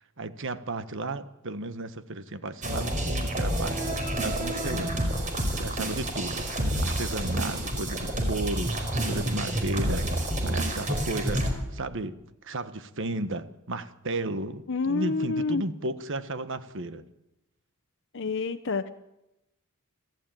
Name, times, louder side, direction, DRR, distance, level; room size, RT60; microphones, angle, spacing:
voice 1, 0.0-3.8 4.2-5.1 5.5-12.2 12.4-17.0, right 2 dB, 60° right, 11 dB, 1.4 m, -34 dB
sound 1, 2.6-11.5, right 1 dB, 35° right, 4.9 m, -29 dB
voice 2, 14.7-15.6 18.1-18.9, left 4 dB, 60° left, 9 dB, 0.9 m, -28 dB
26.5 x 15.5 x 9.1 m, 0.94 s
head